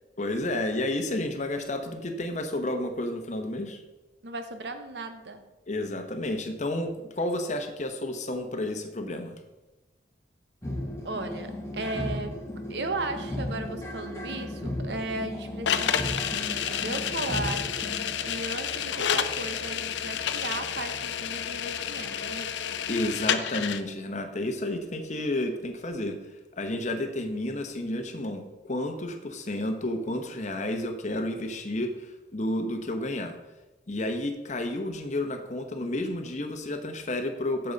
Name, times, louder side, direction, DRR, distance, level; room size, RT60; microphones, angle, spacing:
voice 1, 0.2-3.8 5.7-9.4 22.9-26.1 26.6-28.4 28.7-33.3 33.9-37.7, left 1 dB, 40° left, 6 dB, 0.9 m, -31 dB
voice 2, 4.2-5.4 11.0-12.4 12.7-22.7, right 2 dB, 70° right, 8 dB, 0.9 m, -36 dB
sound 1, 10.6-23.3, left 1 dB, 15° left, 1.3 m, -37 dB
sound 2, 15.7-23.8, left 8 dB, 90° left, 0.5 m, -30 dB
8.6 x 6.9 x 4.0 m, 1.1 s
head